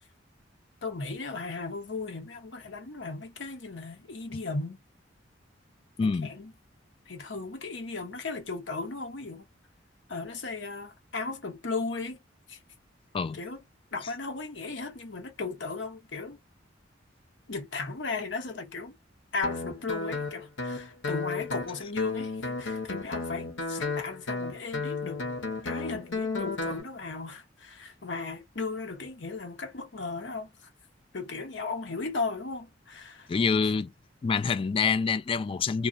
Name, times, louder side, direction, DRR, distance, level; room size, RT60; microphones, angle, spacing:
voice 1, 0.8-4.8 6.0-6.5 7.1-9.5 10.1-12.2 12.5-12.6 13.3-13.6 13.9-16.4 17.5-19.0 19.3-25.2 25.6-30.5 31.1-33.3, left 3 dB, 75° left, 1.0 m, -36 dB
voice 2, 6.0-6.3 13.1-13.4 33.3-33.9 34.2-35.9, left 5 dB, 30° left, 0.3 m, -26 dB
Guitar, 19.4-26.8, left 3 dB, 90° left, 1.0 m, -33 dB
3.0 x 2.1 x 2.5 m
head